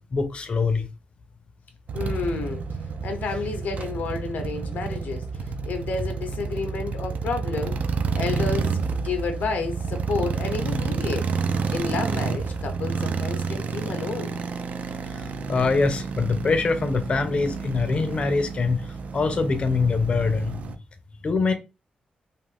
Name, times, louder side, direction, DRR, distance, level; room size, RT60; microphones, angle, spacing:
voice 1, 0.1-0.9 15.5-18.8 19.1-20.6 21.2-21.5, left 4 dB, 40° left, 0.5 m, -23 dB
voice 2, 1.9-2.6 3.0-5.3 5.7-7.8 8.1-11.3 11.7-14.3, left 4 dB, 85° left, 0.6 m, -30 dB
sound 1, 1.9-20.8, right 5 dB, 60° right, 0.3 m, -30 dB
2.5 x 2.4 x 3.3 m
wide cardioid pair, 140°, 3 cm